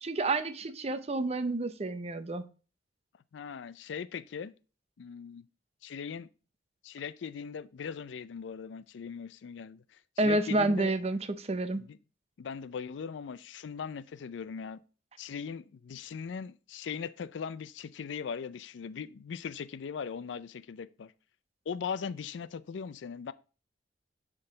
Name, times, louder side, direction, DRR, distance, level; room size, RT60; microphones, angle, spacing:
voice 1, 0.0-2.4 10.2-11.8, right 2 dB, 35° right, 0.6 m, -29 dB
voice 2, 3.3-4.5 5.0-5.4 5.8-6.3 6.8-9.8 10.2-10.9 11.7-12.0 12.4-14.8 15.2-21.1 21.7-23.3, left 6 dB, 85° left, 0.4 m, -39 dB
11.0 x 3.7 x 3.9 m
head